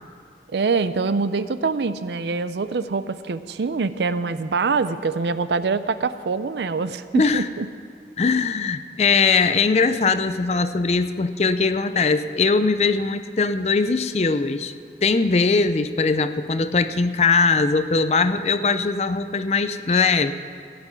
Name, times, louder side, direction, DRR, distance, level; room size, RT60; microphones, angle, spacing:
voice 1, 0.5-7.7, right 4 dB, 75° right, 13 dB, 0.5 m, -24 dB
voice 2, 7.1-7.5 8.2-14.7 15.0-20.3, left 4 dB, 35° left, 11 dB, 0.5 m, -20 dB
15.5 x 6.1 x 9.0 m, 2.3 s
head